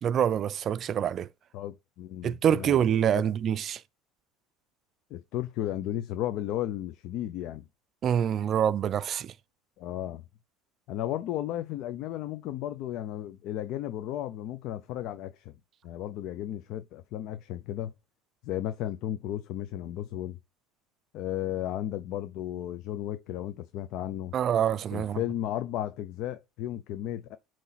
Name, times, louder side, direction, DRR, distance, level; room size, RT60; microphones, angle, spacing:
voice 1, 0.0-1.3 2.2-3.8 8.0-9.3 24.3-25.2, right 9 dB, 40° right, 0.4 m, -26 dB
voice 2, 1.5-2.8 3.1-3.2 5.1-7.6 9.8-10.2 10.9-15.5 15.8-17.9 18.4-20.4 21.1-24.3 24.9-27.4, left 12 dB, 60° left, 0.6 m, -34 dB
8.1 x 3.2 x 4.0 m
supercardioid pair, 130°, 0 cm